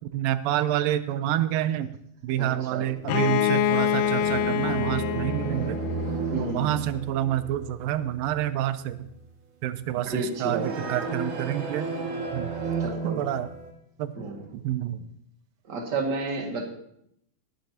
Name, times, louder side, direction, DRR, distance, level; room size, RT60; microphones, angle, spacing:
voice 1, 0.1-1.9 2.2-5.8 6.4-9.1 9.6-11.9 12.3-12.6 12.9-13.5 14.0-15.1, right 12 dB, 90° right, 12 dB, 2.4 m, -28 dB
voice 2, 2.4-2.9 6.3-6.8 10.0-10.9 12.8-13.2 14.2-14.4 15.7-16.7, right 3 dB, 35° right, 1 dB, 2.1 m, -31 dB
Bowed string instrument, 3.1-6.7, left 10 dB, 80° left, 2.2 m, -26 dB
sound 1, 3.1-8.5 8.8-9.2 10.4-13.7, right 4 dB, 65° right, 3.0 m, -33 dB
19.5 x 10.0 x 2.8 m, 0.74 s
omnidirectional pair, 3.9 m